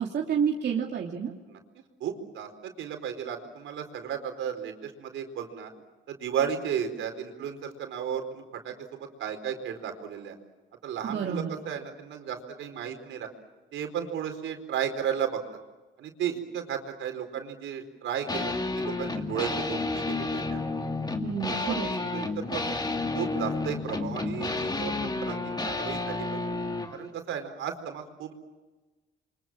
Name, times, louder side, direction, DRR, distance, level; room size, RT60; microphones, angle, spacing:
voice 1, 0.0-1.3 11.0-11.5 21.2-21.9, right 7 dB, 60° right, -1 dB, 2.8 m, -29 dB
voice 2, 2.0-5.7 6.1-10.4 10.8-13.3 13.7-15.4 16.0-20.7 21.4-22.6 23.1-25.4 25.6-26.4 26.9-28.3, right 8 dB, 80° right, 5 dB, 4.4 m, -34 dB
sound 1, 18.3-27.0, left 3 dB, 20° left, 2.5 m, -31 dB
29.0 x 24.5 x 7.5 m, 1.2 s
cardioid pair, 90°, 20 cm